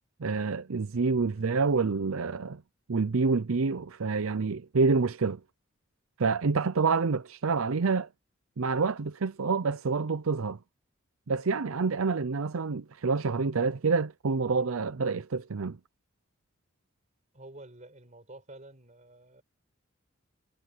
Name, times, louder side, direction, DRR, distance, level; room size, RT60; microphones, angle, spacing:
voice 1, 0.2-2.6 2.9-5.4 6.2-8.1 8.6-10.6 11.3-15.8, right 4 dB, 85° right, 0.6 m, -27 dB
voice 2, 17.3-19.4, right 2 dB, 35° right, 4.9 m, -49 dB
head